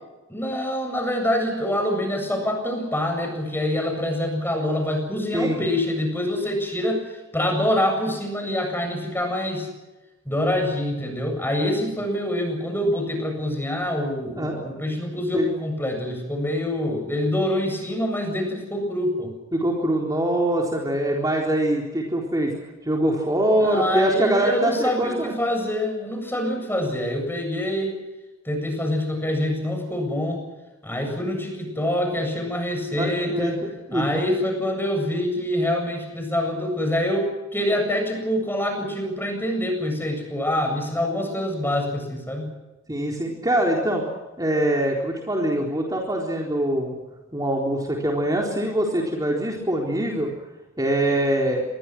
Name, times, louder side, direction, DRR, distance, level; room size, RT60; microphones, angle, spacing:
voice 1, 0.3-9.7 10.2-19.3 23.5-28.0 28.4-30.4 30.8-33.6 33.9-42.5, left 1 dB, 10° left, 4 dB, 7.8 m, -25 dB
voice 2, 14.4-14.7 15.3-15.5 19.5-22.5 22.8-25.3 33.0-34.2 42.9-44.0 44.4-47.0 47.3-50.3 50.8-51.6, right 1 dB, 20° right, -1 dB, 4.1 m, -23 dB
27.5 x 22.5 x 6.2 m, 1.1 s
head